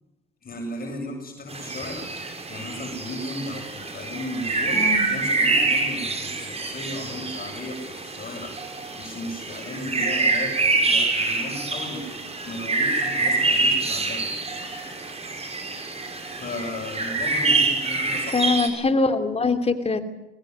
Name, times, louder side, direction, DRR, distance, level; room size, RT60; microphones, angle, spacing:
voice 1, 0.4-2.1 2.5-4.8 5.1-8.5 9.0-12.1 12.4-14.3 16.3-18.4, left 1 dB, 45° left, 2 dB, 7.5 m, -35 dB
sound 1, 1.5-18.7, right 3 dB, 30° right, 6.2 m, -26 dB
voice 2, 4.7-5.1 18.3-20.0, left 3 dB, 30° left, 9 dB, 2.9 m, -23 dB
22.5 x 20.5 x 9.6 m, 0.97 s
cardioid pair, 90°, 20 cm